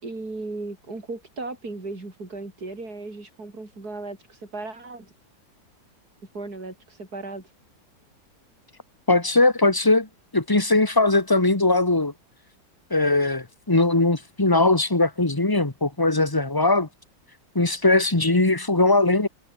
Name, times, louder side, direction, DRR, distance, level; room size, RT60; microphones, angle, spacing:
voice 1, 0.0-5.1 6.3-7.5, right 3 dB, 55° right, 5.8 m, -36 dB
voice 2, 9.1-10.1 10.3-12.1 12.9-16.9 17.5-19.3, left 2 dB, 10° left, 1.7 m, -20 dB
omnidirectional pair, 2.0 m